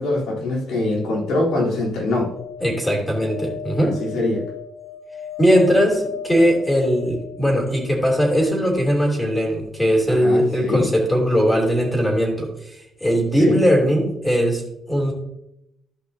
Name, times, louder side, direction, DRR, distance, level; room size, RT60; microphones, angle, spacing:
voice 1, 0.0-2.3 3.8-4.5 10.1-10.9 13.3-13.6, left 2 dB, 80° left, -4 dB, 3.5 m, -23 dB
sound 1, 2.0-8.2 10.5-10.6 10.8-10.9, left 7 dB, 15° right, 1.9 m, -36 dB
voice 2, 2.6-4.0 5.4-14.6 14.9-15.1, equal, 10° left, 0 dB, 3.1 m, -19 dB
13.5 x 5.5 x 2.8 m, 0.81 s
cardioid pair, 90°, 0 cm